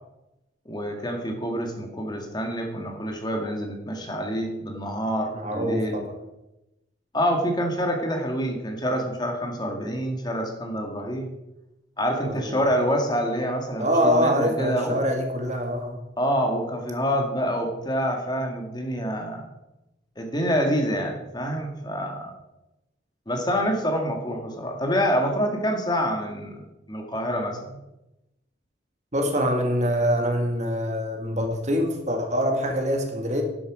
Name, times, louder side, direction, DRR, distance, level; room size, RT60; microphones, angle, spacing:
voice 1, 0.7-6.0 7.1-11.3 12.0-15.0 16.2-19.4 20.2-22.3 23.3-26.6 26.9-27.8, equal, 20° left, 3 dB, 1.9 m, -27 dB
voice 2, 5.3-6.1 12.2-12.6 13.8-16.0 29.1-33.4, equal, 35° right, 3 dB, 1.9 m, -24 dB
11.0 x 11.0 x 5.0 m, 0.92 s
head